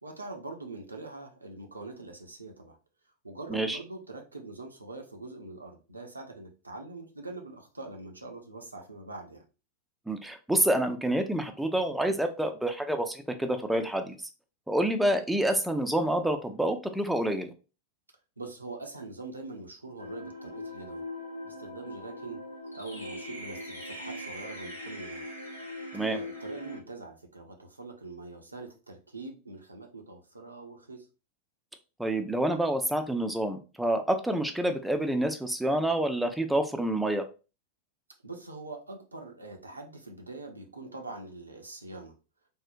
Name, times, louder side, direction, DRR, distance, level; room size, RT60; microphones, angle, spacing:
voice 1, 0.0-2.8 3.2-9.4 18.4-21.0 21.4-22.5 22.7-25.2 26.0-31.1 38.2-42.1, right 2 dB, 80° right, 2 dB, 0.6 m, -43 dB
voice 2, 10.1-14.2 14.7-17.5 25.9-26.2 32.0-37.2, right 1 dB, 5° right, 5 dB, 0.4 m, -28 dB
sound 1, 20.0-26.8, left 1 dB, 80° left, 0.7 m, -40 dB
3.5 x 2.0 x 2.5 m, 0.32 s
figure-of-eight pair, 90°, 0 cm